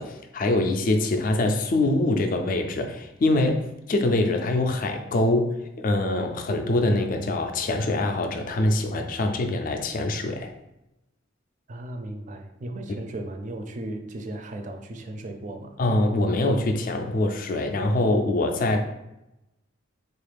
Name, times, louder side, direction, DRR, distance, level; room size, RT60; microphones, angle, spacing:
voice 1, 0.0-10.5 15.8-18.8, left 2 dB, 45° left, 5 dB, 0.3 m, -24 dB
voice 2, 11.7-15.8, right 1 dB, 40° right, 5 dB, 0.4 m, -36 dB
3.7 x 2.4 x 3.3 m, 0.92 s
head